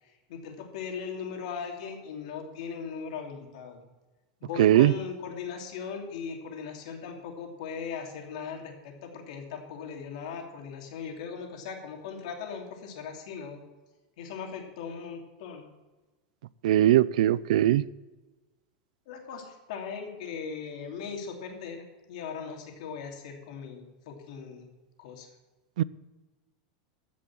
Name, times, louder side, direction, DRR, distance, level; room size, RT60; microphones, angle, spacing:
voice 1, 0.3-3.8 4.4-13.6 14.2-15.7 19.1-24.7 25.0-25.3, left 6 dB, 70° left, 2 dB, 2.9 m, -39 dB
voice 2, 4.6-4.9 16.6-17.8 25.8-25.9, right 13 dB, 80° right, 20 dB, 0.5 m, -20 dB
15.0 x 6.2 x 7.3 m, 1.2 s
supercardioid pair, 150°, 4 cm